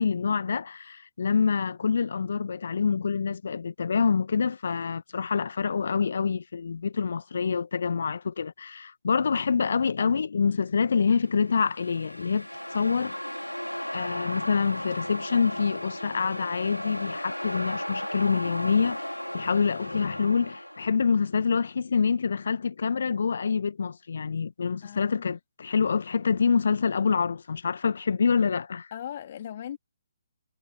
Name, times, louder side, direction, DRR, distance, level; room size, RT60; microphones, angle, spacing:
voice 1, 0.0-13.2 13.9-28.9, left 5 dB, 55° left, 1.7 m, -26 dB
sound 1, 11.2-21.1, equal, 90° left, 3.4 m, -35 dB
voice 2, 24.8-25.4 28.9-29.8, left 10 dB, 40° left, 2.7 m, -38 dB
figure-of-eight pair, 140°, 0 cm